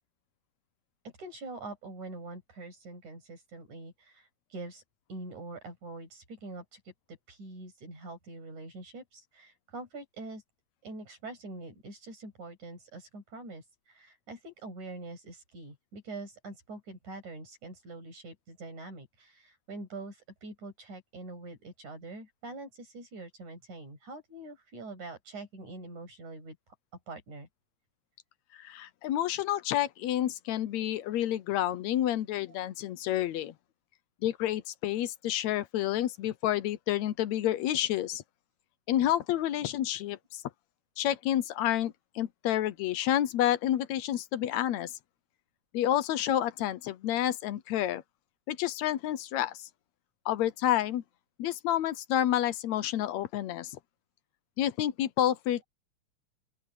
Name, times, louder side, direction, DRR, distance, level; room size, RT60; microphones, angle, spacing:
voice 1, 1.0-4.8 5.1-6.9 7.3-10.4 10.8-26.6 27.1-27.5 32.4-32.6, right 2 dB, 90° right, 9.2 m, -44 dB
voice 2, 28.6-33.5 34.2-38.2 38.9-40.4 41.0-44.9 45.7-48.0 48.5-49.7 50.3-51.0 51.4-53.8 54.6-55.6, left 12 dB, 75° left, 2.1 m, -29 dB
open air
omnidirectional pair, 3.3 m